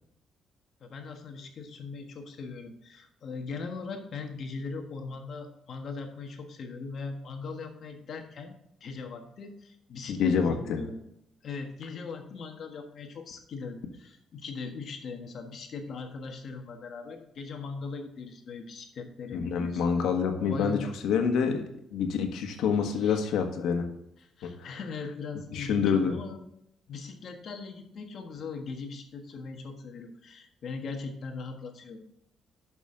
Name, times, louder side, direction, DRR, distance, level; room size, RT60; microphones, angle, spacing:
voice 1, 0.8-8.5 8.8-11.0 11.4-19.8 20.5-20.9 23.0-23.2 24.4-26.4 26.9-32.0, left 4 dB, 45° left, 4 dB, 1.4 m, -40 dB
voice 2, 10.1-10.8 19.3-23.8 24.4-24.8 25.5-26.2, left 6 dB, 85° left, 4 dB, 1.5 m, -27 dB
11.5 x 6.2 x 3.8 m, 0.78 s
cardioid pair, 175°, 0 cm